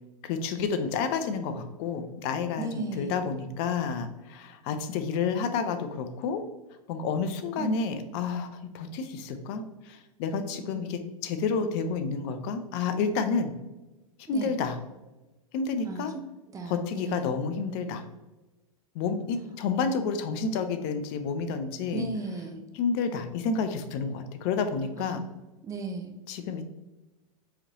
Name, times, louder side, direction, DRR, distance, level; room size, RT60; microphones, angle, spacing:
voice 1, 0.2-2.7 3.0-6.5 6.9-13.6 14.3-14.8 15.5-16.1 16.7-18.0 18.9-22.1 22.7-25.2 26.3-26.6, left 5 dB, 45° left, 9 dB, 0.6 m, -30 dB
voice 2, 2.6-3.2 7.6-7.8 8.0-8.1 10.7-10.8 14.3-14.5 15.8-16.2 16.5-17.3 21.9-22.6 25.0-25.2 25.6-26.1, right 3 dB, 15° right, 4 dB, 0.7 m, -36 dB
4.9 x 3.1 x 2.8 m, 1.1 s
hypercardioid pair, 105°, 19 cm